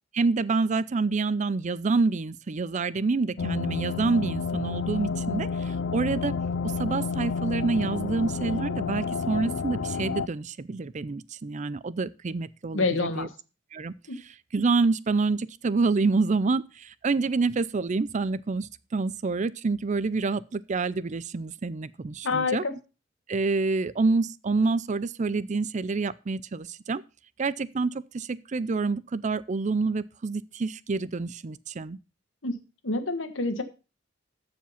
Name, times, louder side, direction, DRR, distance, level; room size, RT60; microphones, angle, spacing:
voice 1, 0.1-6.3 6.8-13.3 13.7-13.9 14.5-22.6 23.3-27.0 27.4-32.0, right 3 dB, 40° right, 0.5 m, -27 dB
sound 1, 3.4-10.3, left 5 dB, 70° left, 0.4 m, -30 dB
voice 2, 12.7-13.3 14.1-14.2 22.2-22.7 32.4-32.6 32.8-33.6, left 3 dB, 90° left, 1.5 m, -27 dB
14.0 x 5.0 x 5.7 m
head